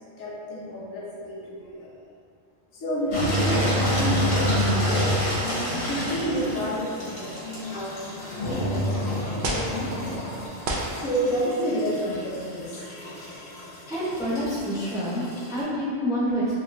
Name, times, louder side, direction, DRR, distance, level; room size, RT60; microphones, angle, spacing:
voice 1, 0.2-1.9 2.7-4.8 5.4-10.2 10.9-12.8, equal, 80° left, -6 dB, 1.1 m, -30 dB
Engine, 3.1-10.5, equal, 45° left, 1.0 m, -26 dB
sound 1, 6.3-15.6, left 1 dB, 65° left, 1.5 m, -43 dB
sound 2, 6.4-7.4 8.3-8.4 9.4-9.8 10.6-11.1 11.9-12.2, right 2 dB, 65° right, 0.7 m, -32 dB
voice 2, 13.9-16.5, equal, 5° right, -11 dB, 0.7 m, -27 dB
3.6 x 3.1 x 2.5 m, 2.3 s
omnidirectional pair, 1.3 m